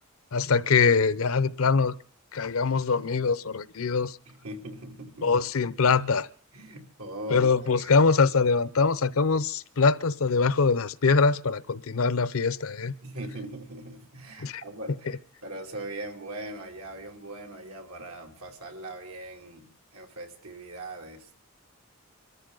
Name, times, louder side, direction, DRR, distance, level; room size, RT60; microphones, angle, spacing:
voice 1, 0.3-1.9 2.3-4.2 5.2-6.3 7.3-12.9 14.4-14.6, left 4 dB, 75° left, 0.7 m, -23 dB
voice 2, 4.2-5.4 6.5-8.1 13.0-21.3, right 1 dB, 90° right, 2.9 m, -40 dB
26.5 x 13.5 x 3.9 m
head